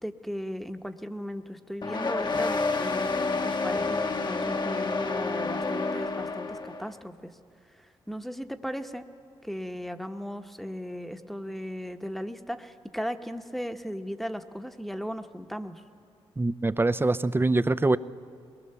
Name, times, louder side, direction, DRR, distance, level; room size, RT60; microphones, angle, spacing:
voice 1, 0.0-7.3 7.8-9.1 9.4-15.8, equal, ahead, 6 dB, 1.1 m, -37 dB
sound 1, 1.8-6.9, left 3 dB, 40° left, 1.2 m, -29 dB
voice 2, 16.4-18.0, right 2 dB, 20° right, 15 dB, 0.6 m, -24 dB
22.0 x 20.5 x 6.9 m, 2.3 s
cardioid pair, 60°, 11 cm